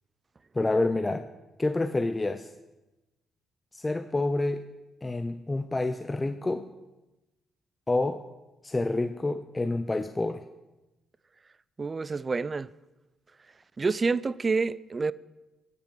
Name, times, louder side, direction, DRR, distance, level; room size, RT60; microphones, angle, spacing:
voice 1, 0.5-1.3 1.6-2.5 3.7-4.6 5.0-6.7 7.9-8.2 8.6-10.4, left 2 dB, 20° left, 0.5 m, -28 dB
voice 2, 11.8-12.7 13.8-15.1, right 4 dB, 30° right, 0.4 m, -28 dB
12.5 x 8.2 x 5.2 m
cardioid pair, 90°, 0 cm